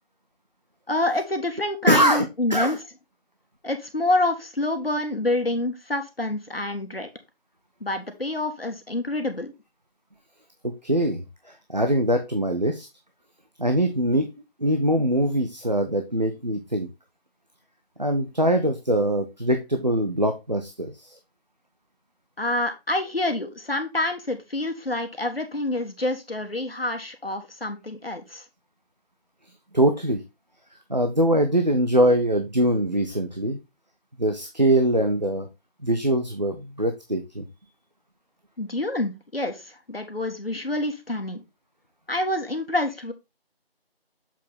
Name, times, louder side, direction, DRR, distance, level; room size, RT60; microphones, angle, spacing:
voice 1, 0.9-2.8 3.6-7.1 7.8-9.5 22.4-28.4 38.6-41.4 42.1-43.1, left 2 dB, 65° left, 5 dB, 1.6 m, -27 dB
voice 2, 1.9-2.8 10.6-11.2 11.7-12.9 13.6-14.3 14.6-16.9 18.0-21.2 29.7-30.2 30.9-33.6 34.2-35.5 35.8-37.4, right 1 dB, 45° right, 5 dB, 0.9 m, -22 dB
7.3 x 4.5 x 3.6 m, 0.24 s
figure-of-eight pair, 175°, 31 cm